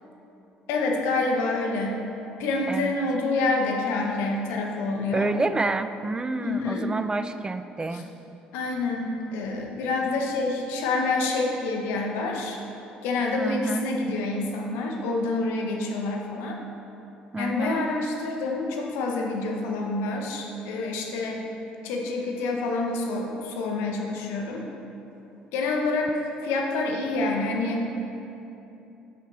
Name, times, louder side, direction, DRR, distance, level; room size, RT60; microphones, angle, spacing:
voice 1, 0.7-2.0 2.4-5.3 6.4-6.9 7.9-8.0 8.5-12.6 13.0-16.6 17.4-21.4 21.8-24.6 25.5-28.0, left 3 dB, 70° left, 1 dB, 1.0 m, -27 dB
voice 2, 5.1-8.0 13.4-13.9 17.3-17.9, right 2 dB, 20° right, 10 dB, 0.4 m, -28 dB
10.0 x 6.5 x 3.3 m, 2.9 s
hypercardioid pair, 55°, 4 cm